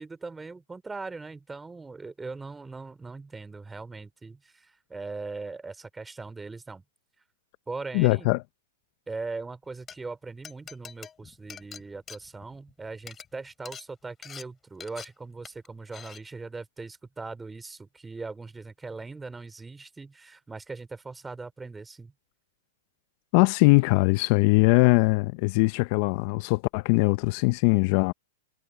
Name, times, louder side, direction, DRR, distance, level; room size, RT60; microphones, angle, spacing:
voice 1, 0.0-6.8 7.7-8.3 9.1-22.1, right 3 dB, 10° right, 3.1 m, -40 dB
voice 2, 7.9-8.4 23.3-28.1, left 25 dB, 50° left, 0.6 m, -21 dB
Glass, 9.7-10.0 10.4-12.7 13.0-13.3 13.7-13.8 14.2-14.4 14.8-15.1 15.4-15.7 15.9-16.2, left 7 dB, 20° left, 7.6 m, -44 dB
hypercardioid pair, 120°, 0 cm